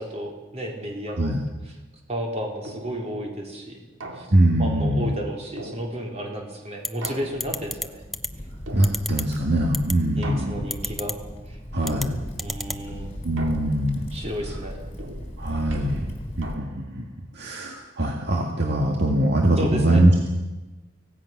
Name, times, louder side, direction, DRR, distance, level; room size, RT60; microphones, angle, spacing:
voice 1, 0.0-1.3 2.1-3.8 4.1-4.3 4.6-8.0 10.2-11.2 11.5-11.6 12.4-13.1 14.1-14.9 19.6-20.0, equal, 30° right, 0 dB, 4.3 m, -32 dB
sound 1, 2.6-3.2 4.0-4.7 5.6-6.3 7.0-7.8 8.7-9.4 10.2-11.0 11.8-12.5 13.4-14.1 15.0-17.0, right 1 dB, 70° right, 2.4 m, -41 dB
voice 2, 4.3-5.1 8.7-10.7 11.7-12.2 13.2-14.0 15.4-16.0 16.4-17.1 17.3-20.3, right 1 dB, 55° right, 0 dB, 2.0 m, -22 dB
sound 2, 6.8-7.1 7.4-7.9 8.1-8.3 8.8-9.2 9.7-9.9 10.7-11.1 11.8-12.1 12.4-12.8, left 1 dB, ahead, 0.6 m, -28 dB
Crackle, 7.3-16.5, equal, 30° left, 3.8 m, -37 dB
25.0 x 17.5 x 6.1 m, 1.2 s
head